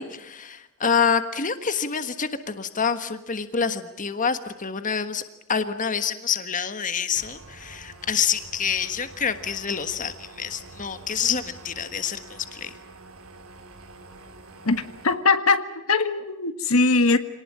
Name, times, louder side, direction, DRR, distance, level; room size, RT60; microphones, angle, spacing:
voice 1, 0.0-5.2 5.5-12.7, left 6 dB, 40° left, 10 dB, 1.4 m, -27 dB
sound 1, 7.2-15.1, right 2 dB, 80° right, 3.8 m, -46 dB
voice 2, 14.6-17.2, left 3 dB, 90° left, 10 dB, 1.6 m, -21 dB
27.0 x 19.0 x 8.9 m, 0.94 s
head